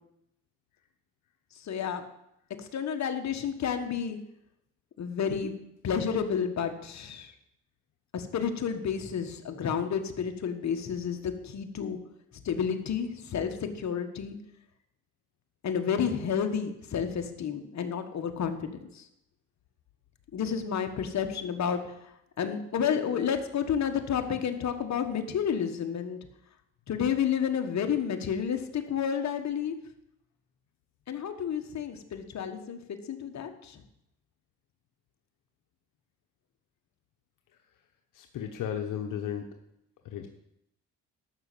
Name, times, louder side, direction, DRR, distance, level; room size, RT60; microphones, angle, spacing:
voice 1, 1.6-2.0 2.6-4.2 5.0-5.5 5.8-7.3 8.1-12.0 12.4-14.3 15.6-19.1 20.3-22.1 22.4-26.2 26.9-29.8 31.1-33.8, left 7 dB, 60° left, 6 dB, 1.5 m, -30 dB
voice 2, 38.1-39.5 40.0-40.3, left 9 dB, 85° left, 4 dB, 1.1 m, -34 dB
12.0 x 6.3 x 8.5 m, 0.81 s
cardioid pair, 90°, 31 cm